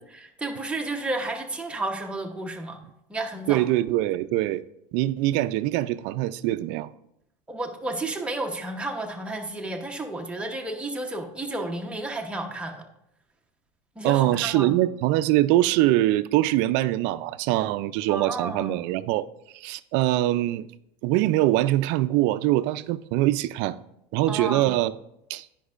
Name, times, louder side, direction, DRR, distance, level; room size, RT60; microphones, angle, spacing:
voice 1, 0.1-2.8 3.1-3.6 7.5-12.8 14.0-14.8 18.1-18.8 24.3-24.7, right 2 dB, 5° right, 0.9 m, -32 dB
voice 2, 3.5-4.6 4.9-6.9 14.0-19.3 19.5-20.7 21.0-23.8 24.1-24.9 25.3-25.5, right 15 dB, 60° right, 0.4 m, -23 dB
10.0 x 5.3 x 2.4 m
supercardioid pair, 115°, 21 cm